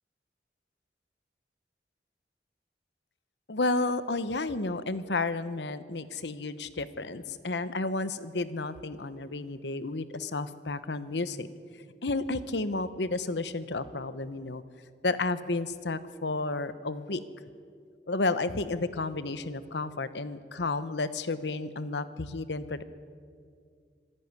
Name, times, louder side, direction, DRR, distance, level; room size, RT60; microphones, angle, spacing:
voice 1, 3.5-11.5 12.0-14.6 15.0-17.2 18.1-22.8, left 3 dB, 75° left, 13 dB, 1.0 m, -32 dB
25.5 x 11.0 x 9.7 m, 2.2 s
head